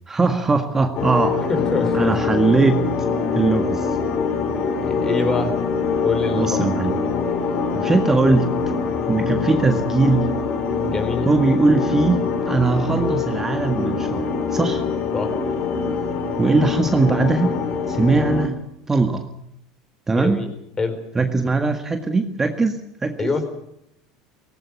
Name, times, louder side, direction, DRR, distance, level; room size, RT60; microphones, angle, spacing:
voice 1, 0.1-1.4 1.9-2.8 3.3-3.9 6.3-6.9 7.7-8.5 9.1-10.3 11.2-14.3 14.5-14.8 16.4-17.6 17.9-18.6 18.9-19.3 20.1-20.4 21.1-23.3, right 3 dB, 20° right, 6 dB, 1.8 m, -20 dB
sound 1, 0.9-18.5, left 5 dB, 55° left, 3.3 m, -24 dB
voice 2, 1.5-2.1 4.8-5.5 6.0-6.6 10.8-11.3 15.1-15.3 20.1-20.5 20.8-21.0 23.2-23.4, left 3 dB, 25° left, 9 dB, 4.6 m, -24 dB
18.0 x 16.5 x 9.5 m, 0.78 s
hypercardioid pair, 90°, 2 cm